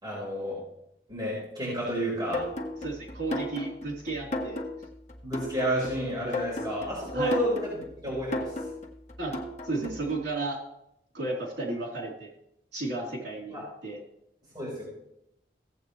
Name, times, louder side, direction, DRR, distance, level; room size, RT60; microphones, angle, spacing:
voice 1, 0.0-0.6 1.1-2.4 5.2-8.5 13.5-13.6 14.5-14.8, equal, 25° right, -7 dB, 4.4 m, -30 dB
sound 1, 2.3-10.1, left 1 dB, 40° left, 1.2 m, -35 dB
voice 2, 2.8-4.6 7.1-7.4 9.2-9.4 9.7-10.6 11.1-12.3 12.7-14.0, right 2 dB, 90° right, -3 dB, 3.6 m, -33 dB
16.5 x 8.1 x 3.2 m, 0.80 s
head